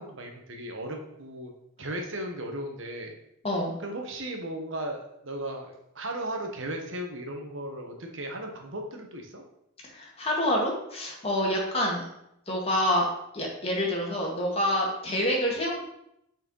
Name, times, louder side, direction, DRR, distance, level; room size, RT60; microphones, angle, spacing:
voice 1, 0.0-1.5 1.8-3.1 3.8-9.4, right 1 dB, 65° right, 3 dB, 1.2 m, -36 dB
voice 2, 3.4-3.8 9.8-12.0 12.5-13.1 13.3-15.8, left 1 dB, 30° left, -2 dB, 1.9 m, -27 dB
6.1 x 4.5 x 5.4 m, 0.80 s
head